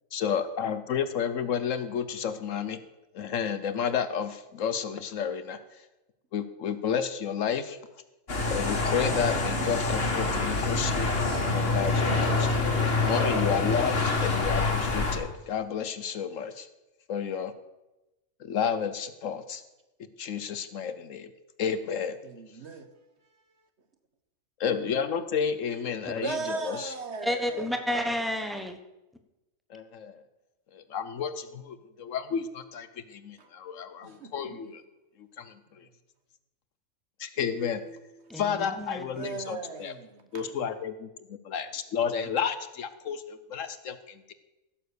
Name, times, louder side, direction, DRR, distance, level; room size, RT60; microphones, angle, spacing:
voice 1, 0.1-2.8 3.1-5.6 6.3-7.8 8.5-11.2 11.4-12.5 13.1-16.7 17.1-17.5 18.4-19.6 20.2-21.3 21.6-22.2 24.6-26.4 26.6-26.9 29.7-30.2 30.7-34.8 35.4-35.8 37.2-37.8 38.3-39.9 40.3-44.3, left 7 dB, 65° left, 1.1 m, -31 dB
sound 1, 8.3-15.2, left 3 dB, 40° left, 1.9 m, -26 dB
voice 2, 11.7-12.7 22.2-22.9 24.6-25.3 25.6-27.9 33.4-33.5 34.0-34.7 37.4-38.4 39.1-40.5, right 4 dB, 50° right, 1.3 m, -39 dB
voice 3, 27.2-28.8 38.3-39.3, equal, ahead, 0.9 m, -31 dB
16.0 x 7.2 x 6.6 m
omnidirectional pair, 1.5 m